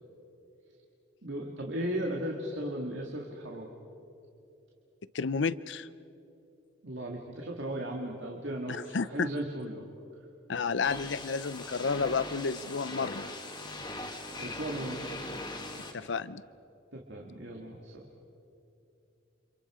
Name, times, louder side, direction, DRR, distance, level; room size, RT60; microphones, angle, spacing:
voice 1, 1.2-3.7 6.8-9.8 14.4-15.1 16.9-18.1, right 1 dB, 65° right, -1 dB, 2.1 m, -36 dB
voice 2, 5.1-5.9 8.7-9.3 10.5-13.3 15.9-16.4, left 5 dB, 65° left, 16 dB, 0.6 m, -31 dB
sound 1, 10.8-15.9, left 2 dB, 20° left, 1.9 m, -40 dB
29.5 x 26.5 x 5.0 m, 2.8 s
head